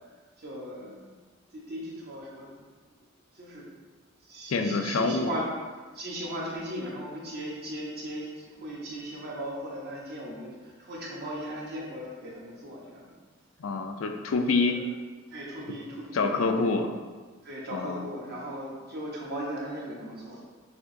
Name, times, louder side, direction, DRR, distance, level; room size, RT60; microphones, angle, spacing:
voice 1, 0.4-1.1 1.5-2.5 3.3-3.7 4.3-5.5 5.9-13.1 14.7-14.9 15.3-16.4 17.4-20.4, equal, 55° right, -4 dB, 1.0 m, -37 dB
voice 2, 4.5-5.3 13.6-14.8 16.1-16.9 17.7-18.1, left 3 dB, 85° left, 5 dB, 0.4 m, -26 dB
5.9 x 2.9 x 2.6 m, 1.4 s
head